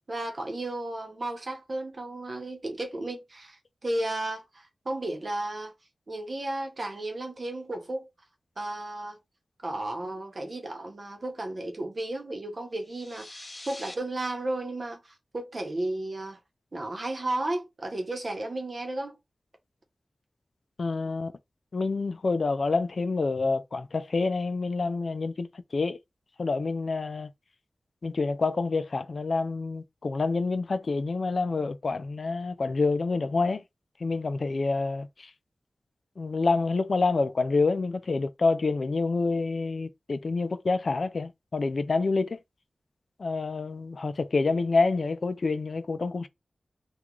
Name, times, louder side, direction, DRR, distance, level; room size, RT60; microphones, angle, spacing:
voice 1, 0.1-5.7 6.1-8.1 8.6-9.2 9.6-16.4 16.7-19.2, right 1 dB, 45° right, 0.8 m, -34 dB
sound 1, 12.8-14.0, left 1 dB, 35° left, 0.7 m, -44 dB
voice 2, 20.8-21.3 21.7-26.0 26.4-27.3 28.0-33.6 34.0-35.3 36.2-42.4 43.2-46.3, left 3 dB, 65° left, 0.3 m, -27 dB
2.9 x 2.3 x 3.7 m
wide cardioid pair, 95°, 0 cm